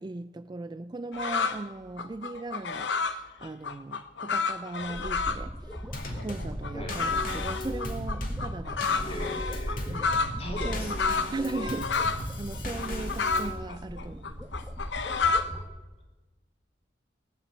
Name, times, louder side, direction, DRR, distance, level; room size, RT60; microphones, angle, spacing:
voice 1, 0.0-5.7 6.2-9.3 9.8-10.1 10.4-11.0 11.3-14.4, right 2 dB, 25° right, 0.4 m, -38 dB
sound 1, 1.1-1.6 2.0-5.4 5.7-12.2 12.5-15.6, left 4 dB, 75° left, 0.9 m, -30 dB
sound 2, 4.8-15.6, equal, 5° right, 1.4 m, -38 dB
Drum kit / Snare drum / Bass drum, 5.9-13.6, left 1 dB, 50° left, 2.4 m, -38 dB
voice 2, 9.0-10.0 10.4-10.9, left 1 dB, 35° left, 3.1 m, -39 dB
20.0 x 7.4 x 8.1 m
head